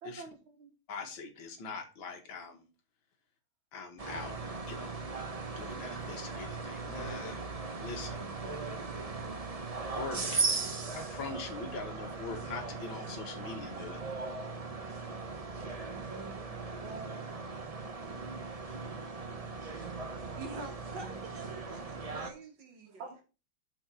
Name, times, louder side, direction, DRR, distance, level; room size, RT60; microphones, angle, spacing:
voice 1, 0.0-0.7 7.9-9.8 15.6-18.3 19.7-20.4 21.0-21.2 23.0-23.2, right 3 dB, 80° right, 2.0 m, -50 dB
voice 2, 0.9-2.6 3.7-4.4 4.7-4.9 5.5-7.4 7.8-8.2 10.0-10.5 10.9-14.0, left 4 dB, 75° left, 2.4 m, -42 dB
sound 1, 4.0-22.3, right 4 dB, 30° right, 0.7 m, -38 dB
voice 3, 20.4-23.0, right 3 dB, 65° right, 2.0 m, -46 dB
7.3 x 5.2 x 6.0 m
omnidirectional pair, 2.2 m